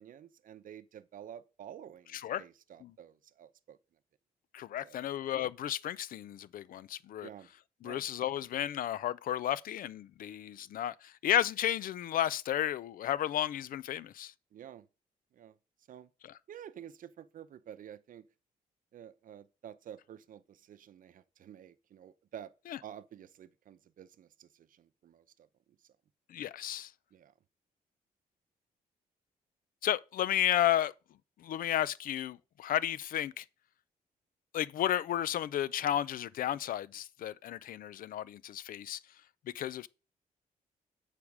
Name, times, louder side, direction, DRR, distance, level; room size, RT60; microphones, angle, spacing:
voice 1, 0.0-3.8 4.8-5.1 7.2-7.5 7.8-8.0 14.5-14.9 15.3-15.6 15.9-16.1 16.5-18.3 18.9-22.5 22.8-25.5 27.1-27.3, right 9 dB, 65° right, 0.7 m, -50 dB
voice 2, 4.5-7.3 7.8-14.3 16.2-16.3 22.7-22.8 26.3-26.9 29.8-30.9 31.4-33.4 34.5-39.0 39.5-39.9, left 11 dB, 70° left, 0.4 m, -33 dB
8.7 x 5.0 x 4.8 m
cardioid pair, 110°, 15 cm